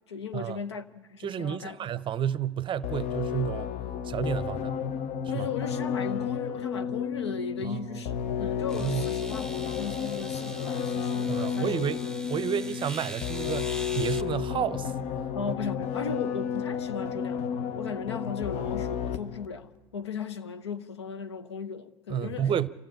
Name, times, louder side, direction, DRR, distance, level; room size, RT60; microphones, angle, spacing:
voice 1, 0.1-1.8 5.3-11.9 15.3-22.5, left 6 dB, 90° left, 0.9 m, -37 dB
voice 2, 1.2-3.7 4.0-4.7 5.3-5.5 7.6-8.0 8.7-9.1 11.3-12.0 12.3-14.9 22.1-22.7, right 9 dB, 35° right, 0.7 m, -30 dB
sound 1, 2.8-19.5, left 7 dB, 55° left, 0.9 m, -32 dB
sound 2, 7.8-7.9 8.7-14.2, right 1 dB, 5° left, 1.1 m, -43 dB
27.5 x 15.0 x 8.9 m
hypercardioid pair, 70°, 14 cm